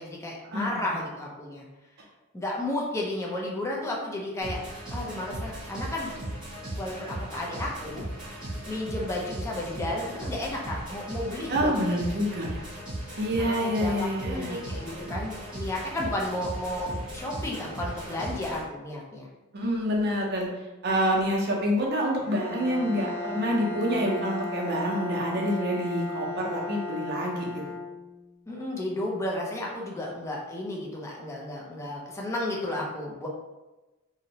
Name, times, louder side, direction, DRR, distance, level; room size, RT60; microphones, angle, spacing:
voice 1, 0.0-1.6 2.3-4.6 4.9-6.1 6.8-8.0 8.7-12.0 13.4-19.3 28.5-33.3, left 1 dB, 15° left, -2 dB, 0.4 m, -33 dB
sound 1, 4.4-18.6, right 1 dB, 5° right, 0.9 m, -37 dB
voice 2, 11.5-12.5 13.2-14.6 19.5-20.5 20.8-27.6, equal, 50° right, -1 dB, 0.5 m, -27 dB
Bowed string instrument, 22.2-28.3, left 3 dB, 75° left, 0.7 m, -35 dB
2.7 x 2.0 x 2.8 m, 1.1 s
head